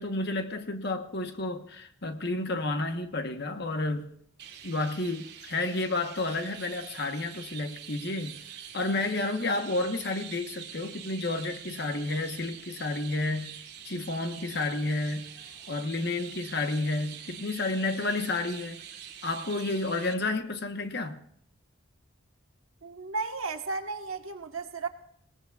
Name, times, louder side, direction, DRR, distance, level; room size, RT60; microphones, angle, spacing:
voice 1, 0.0-4.1 4.6-8.4 8.7-13.6 13.8-15.3 15.7-18.8 19.2-21.2, left 2 dB, 55° left, 1.1 m, -31 dB
Chirp tweet, 4.4-20.1, right 8 dB, 50° right, 1.4 m, -45 dB
voice 2, 22.8-24.9, right 3 dB, 90° right, 1.4 m, -34 dB
21.5 x 18.5 x 2.4 m
head